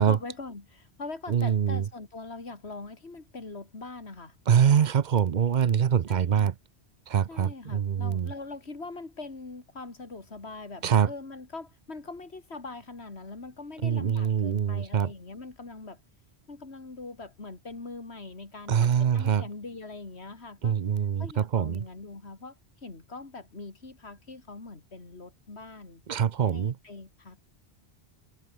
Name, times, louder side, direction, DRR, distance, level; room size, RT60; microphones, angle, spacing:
voice 1, 0.0-4.3 6.1-6.5 7.3-16.0 16.5-20.8 21.2-22.6 22.8-26.0 26.5-27.5, left 3 dB, 80° left, 3.2 m, -42 dB
voice 2, 1.3-1.8 4.5-6.5 7.1-8.3 10.8-11.1 13.8-15.1 18.7-19.4 20.6-21.8 26.1-26.7, right 8 dB, 50° right, 0.7 m, -24 dB
omnidirectional pair, 1.1 m